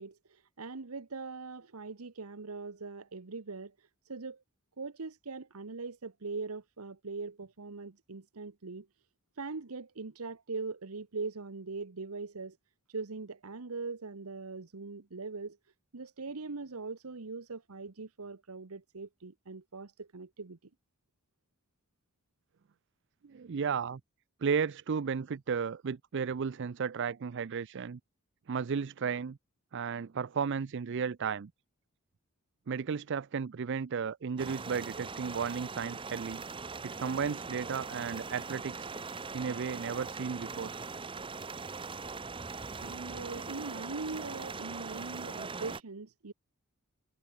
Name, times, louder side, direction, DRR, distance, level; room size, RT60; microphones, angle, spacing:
voice 1, 0.0-4.4 4.8-8.9 9.4-12.6 12.9-15.6 15.9-20.6 42.8-46.3, right 4 dB, 85° right, 1.1 m, -41 dB
voice 2, 23.2-24.0 24.4-28.0 28.5-29.4 29.7-31.5 32.7-36.4 36.8-38.9 39.3-40.7, right 6 dB, 55° right, 0.5 m, -34 dB
sound 1, 34.4-45.8, right 4 dB, 25° right, 0.9 m, -41 dB
head